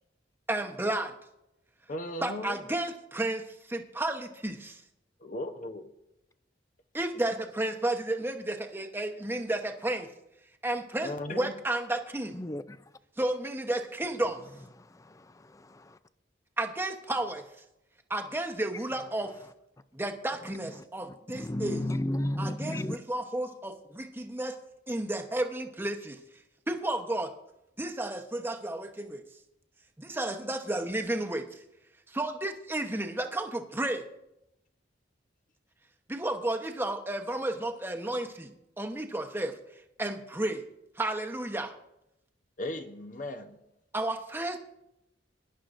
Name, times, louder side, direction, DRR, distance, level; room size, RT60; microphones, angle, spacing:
voice 1, 0.5-1.1 2.2-4.6 6.9-10.1 10.6-12.4 13.2-14.4 16.6-17.4 18.1-19.3 19.9-21.8 22.4-24.6 24.9-26.2 26.7-27.3 27.8-29.2 30.0-31.6 32.1-34.1 36.1-40.6 41.0-41.7 43.9-44.6, right 1 dB, 10° right, 1.0 m, -32 dB
voice 2, 1.9-2.6 5.2-5.8 11.0-11.5 42.6-43.5, left 1 dB, 45° left, 0.9 m, -36 dB
voice 3, 12.3-12.9 14.8-16.0 20.7-20.8 21.3-23.0, left 1 dB, 15° left, 0.4 m, -34 dB
22.5 x 11.0 x 2.6 m
head